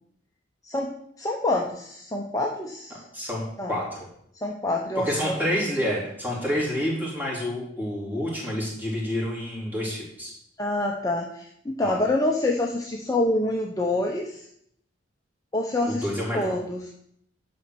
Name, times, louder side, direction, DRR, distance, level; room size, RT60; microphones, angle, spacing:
voice 1, 1.2-3.0 3.6-3.7 4.4-5.4 10.6-14.4 15.5-16.1 16.3-16.9, left 2 dB, 20° left, 0 dB, 0.8 m, -26 dB
voice 2, 3.7-4.0 5.0-10.3 11.8-12.0 15.9-16.6, equal, 10° right, -5 dB, 3.7 m, -28 dB
11.5 x 4.3 x 7.8 m, 0.70 s
head